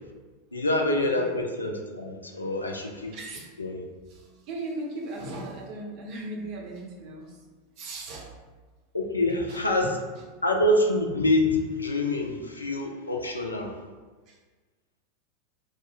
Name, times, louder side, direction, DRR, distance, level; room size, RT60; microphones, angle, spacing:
voice 1, 0.5-3.2 3.6-3.8 8.9-9.9 10.4-13.7, left 1 dB, 85° left, 2 dB, 0.4 m, -26 dB
voice 2, 3.1-3.5 4.1-7.5 7.8-8.4 9.5-9.9 14.3-14.4, right 2 dB, 45° right, -1 dB, 0.7 m, -38 dB
3.1 x 2.0 x 3.6 m, 1.4 s
figure-of-eight pair, 85°, 0 cm